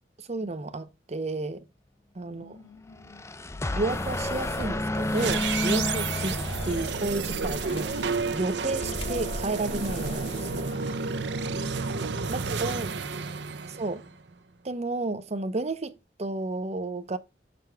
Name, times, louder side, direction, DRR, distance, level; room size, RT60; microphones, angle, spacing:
voice 1, 0.2-1.6 2.2-2.5 3.7-6.3 6.7-10.7 11.9-12.9 13.7-14.0 14.6-17.2, right 2 dB, 40° right, 0.7 m, -32 dB
voice 2, 2.2-3.3 10.6-12.0 12.3-14.2, left 2 dB, 55° left, 2.3 m, -54 dB
sound 1, 2.9-7.5, left 1 dB, 15° left, 0.5 m, -31 dB
sound 2, 3.9-10.7, left 1 dB, 35° left, 1.5 m, -38 dB
sound 3, 5.1-14.3, right 5 dB, 70° right, 0.7 m, -31 dB
6.8 x 6.1 x 3.4 m
head